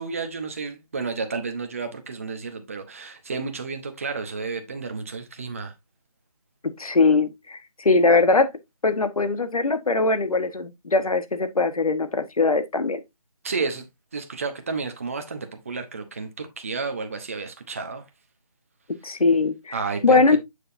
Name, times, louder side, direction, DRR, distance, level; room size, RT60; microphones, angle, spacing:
voice 1, 0.0-5.7 13.4-13.9 14.1-18.0 19.7-20.2, right 4 dB, 20° right, 0.8 m, -31 dB
voice 2, 6.8-8.5 8.8-13.0 19.0-19.8 20.0-20.4, left 3 dB, 70° left, 1.3 m, -21 dB
7.6 x 6.4 x 2.6 m
figure-of-eight pair, 170°, 19 cm